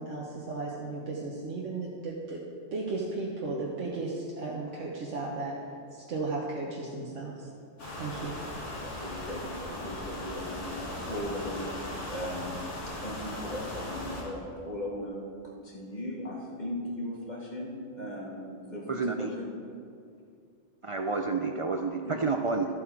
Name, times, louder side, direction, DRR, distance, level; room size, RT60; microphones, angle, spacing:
voice 1, 0.0-2.4 2.7-5.6 5.9-7.5 8.0-8.4, right 3 dB, 90° right, -3 dB, 1.4 m, -35 dB
sound 1, 7.8-14.2, left 1 dB, 90° left, 2.6 m, -38 dB
voice 2, 8.7-12.6 13.0-19.5 22.0-22.2, equal, 40° left, -3 dB, 1.9 m, -38 dB
voice 3, 18.9-19.3 20.8-22.7, right 4 dB, 60° right, 4 dB, 0.3 m, -29 dB
13.0 x 7.5 x 4.5 m, 2.4 s
omnidirectional pair, 1.2 m